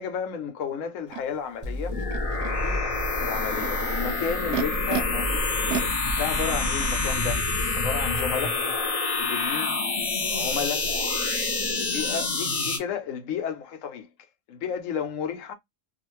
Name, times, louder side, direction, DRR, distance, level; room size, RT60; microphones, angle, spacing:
voice 1, 0.0-2.0 2.4-5.7 6.1-7.5 7.7-8.6 9.1-9.8 10.3-10.9 11.8-14.1 14.5-15.5, left 7 dB, 90° left, 1.0 m, -32 dB
Animal, 1.1-1.2 2.0-2.5 3.3-5.0 5.7-6.9, right 8 dB, 70° right, 0.8 m, -33 dB
sound 1, 1.6-5.6, left 1 dB, 30° right, 0.7 m, -36 dB
sound 2, 1.9-12.8, left 3 dB, 35° left, 0.7 m, -27 dB
2.4 x 2.4 x 3.1 m
omnidirectional pair, 1.3 m